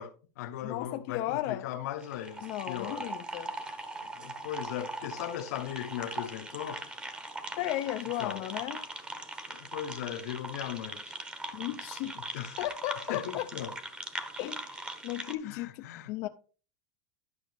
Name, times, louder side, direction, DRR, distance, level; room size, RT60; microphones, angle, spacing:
voice 1, 0.0-3.1 3.7-3.8 4.1-6.8 8.2-8.5 9.5-11.2 12.1-12.6 13.1-13.7 15.4-16.3, left 11 dB, 70° left, 0.9 m, -38 dB
voice 2, 0.6-1.6 2.4-3.5 7.6-8.8 11.5-12.2 12.6-13.5 14.4-16.3, left 14 dB, 45° left, 0.5 m, -35 dB
sound 1, 2.0-15.3, right 2 dB, 10° right, 1.0 m, -41 dB
11.0 x 6.2 x 3.4 m
supercardioid pair, 155°, 9 cm